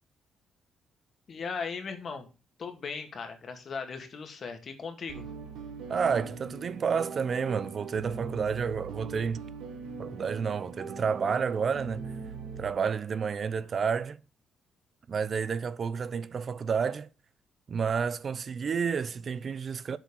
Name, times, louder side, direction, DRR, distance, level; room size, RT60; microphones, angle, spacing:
voice 1, 1.3-2.3 2.6-5.2, left 5 dB, 50° left, 2.0 m, -37 dB
sound 1, 5.1-12.7, right 5 dB, 85° right, 1.3 m, -41 dB
voice 2, 5.9-9.4 10.0-12.0 12.6-14.2 15.1-17.1 17.7-20.0, right 6 dB, 45° right, 0.5 m, -30 dB
7.6 x 4.6 x 7.1 m
cardioid pair, 90°, 0 cm